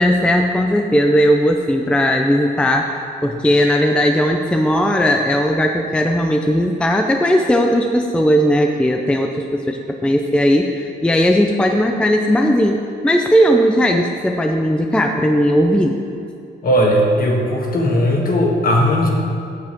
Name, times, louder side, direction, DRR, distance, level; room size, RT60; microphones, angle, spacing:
voice 1, 0.0-16.0, equal, 5° left, 3 dB, 0.5 m, -17 dB
voice 2, 16.6-19.1, equal, 45° left, 0 dB, 1.6 m, -17 dB
8.5 x 7.3 x 4.5 m, 2.5 s
cardioid pair, 90°, 20 cm